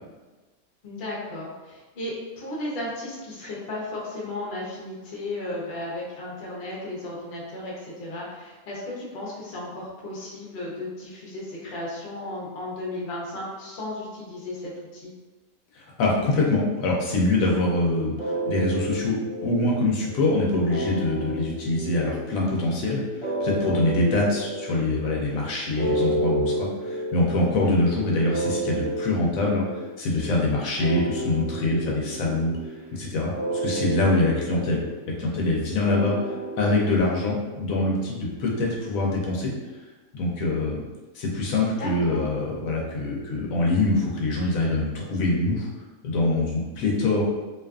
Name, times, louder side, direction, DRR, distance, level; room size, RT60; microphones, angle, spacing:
voice 1, 0.8-15.1 17.4-17.5 23.8-24.0 27.6-27.7 41.8-42.3, left 1 dB, 50° left, -5 dB, 0.8 m, -35 dB
voice 2, 15.7-19.2 19.4-29.6 30.0-32.5 32.9-34.8 35.2-39.5 40.1-40.8 41.1-45.7 46.0-47.2, left 2 dB, 70° left, -2 dB, 1.0 m, -24 dB
sound 1, 18.2-37.0, right 1 dB, 25° right, 0.7 m, -31 dB
2.7 x 2.4 x 2.3 m, 1.2 s
omnidirectional pair, 1.5 m